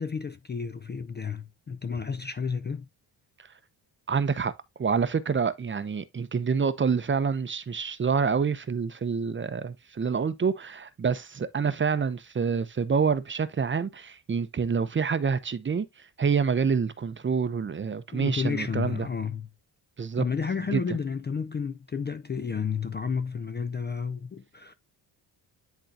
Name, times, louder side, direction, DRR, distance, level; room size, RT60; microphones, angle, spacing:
voice 1, 0.0-2.9 18.1-19.5 20.2-24.7, left 6 dB, 25° left, 0.4 m, -31 dB
voice 2, 4.1-4.5 4.8-19.1 20.0-20.2 20.7-21.0, right 5 dB, 25° right, 0.6 m, -27 dB
10.5 x 3.8 x 2.7 m
cardioid pair, 130°, 44 cm